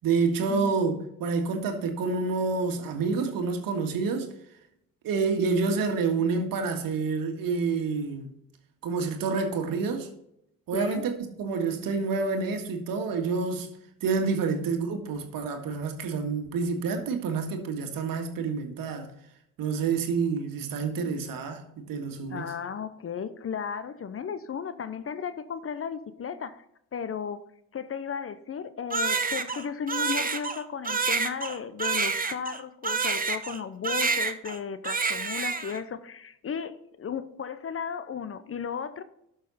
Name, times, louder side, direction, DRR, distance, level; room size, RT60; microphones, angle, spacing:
voice 1, 0.0-4.3 5.0-8.3 8.8-10.1 10.7-11.1 11.4-13.7 14.0-19.1 19.6-22.5, right 4 dB, 60° right, 1.9 m, -28 dB
voice 2, 10.7-11.1 22.3-26.6 26.9-27.4 27.7-39.0, left 7 dB, 35° left, 0.8 m, -35 dB
Crying sobbing, 28.9-33.6 33.8-34.6 34.8-35.8, right 5 dB, 20° right, 1.1 m, -28 dB
12.0 x 6.5 x 4.2 m
hypercardioid pair, 55°, 39 cm